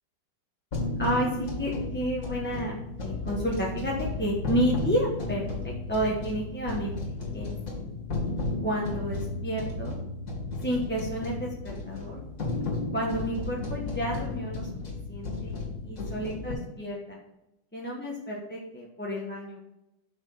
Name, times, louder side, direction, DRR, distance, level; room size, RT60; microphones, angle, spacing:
sound 1, 0.7-16.5, left 3 dB, 45° left, 2.5 m, -33 dB
voice 1, 1.0-2.8 3.0-7.0 7.3-7.5 8.6-9.9 10.6-12.2 12.9-14.7 15.1-15.6 15.8-17.2 17.7-19.6, right 1 dB, 10° left, -3 dB, 0.9 m, -31 dB
6.0 x 5.9 x 5.7 m, 0.91 s
omnidirectional pair, 2.1 m